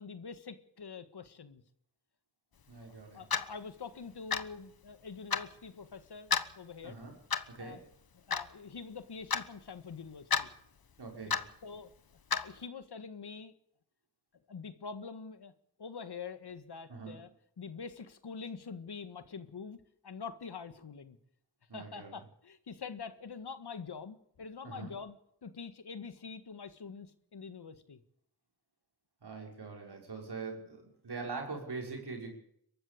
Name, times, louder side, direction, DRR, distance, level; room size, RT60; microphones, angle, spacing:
voice 1, 0.0-1.6 2.9-7.0 7.6-7.8 8.3-10.5 11.6-11.9 12.4-13.5 14.5-15.5 15.8-17.3 17.6-21.2 21.7-25.2 25.4-28.0, left 5 dB, 90° left, 11 dB, 1.7 m, -45 dB
voice 2, 2.7-3.2 6.8-7.1 7.5-7.8 11.0-11.4 16.9-17.2 21.7-22.1 24.6-24.9 29.2-32.3, right 4 dB, 85° right, 1 dB, 6.0 m, -42 dB
Clock, 3.3-3.5 4.3-4.5 5.3-5.5 6.3-6.5 7.3-7.6 8.3-8.5 9.3-9.5 10.3-10.5 11.3-11.5 12.3-12.5, left 6 dB, 65° left, 1.3 m, -30 dB
23.0 x 13.5 x 8.6 m, 0.71 s
cardioid pair, 45°, 39 cm